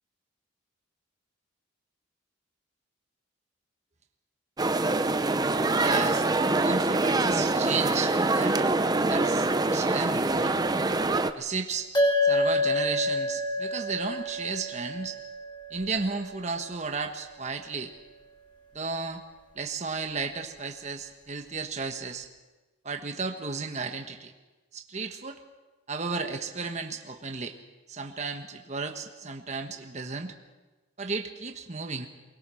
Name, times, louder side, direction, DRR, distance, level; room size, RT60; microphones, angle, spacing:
sound 1, 4.6-11.3, right 2 dB, 20° right, 0.6 m, -25 dB
voice 1, 5.8-6.3 6.5-8.6 9.1-10.6 11.4-11.9 12.2-15.2 15.7-17.9 18.7-19.2 19.5-22.3 22.8-24.3 24.7-25.4 25.9-27.6 27.9-30.3 31.0-32.1, right 4 dB, 35° right, 5 dB, 1.2 m, -33 dB
sound 2, 11.9-16.6, left 1 dB, 20° left, 4.5 m, -28 dB
23.5 x 20.5 x 6.3 m, 1.2 s
head